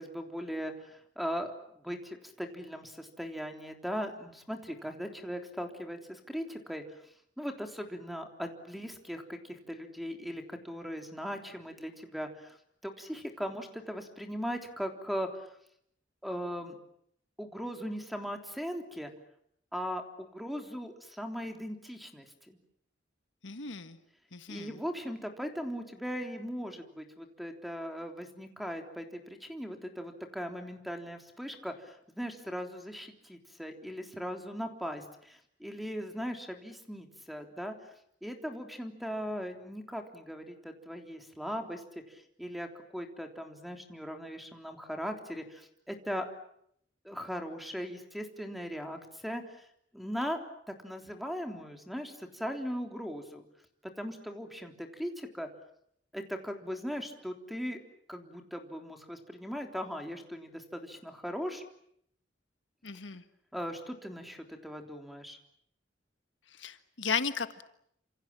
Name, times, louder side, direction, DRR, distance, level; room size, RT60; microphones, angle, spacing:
voice 1, 0.0-6.8 7.4-12.6 12.8-15.5 16.2-16.8 17.4-19.1 19.7-22.6 24.5-37.7 38.2-41.8 42.1-46.3 47.0-49.4 49.9-50.4 50.7-53.4 53.8-55.5 56.1-57.8 58.1-61.6 63.5-65.4, equal, ahead, 5 dB, 3.5 m, -39 dB
voice 2, 23.4-24.0 24.3-24.8 62.8-63.2 66.6-67.6, left 6 dB, 75° left, 10 dB, 1.6 m, -35 dB
28.5 x 27.5 x 7.4 m, 0.71 s
head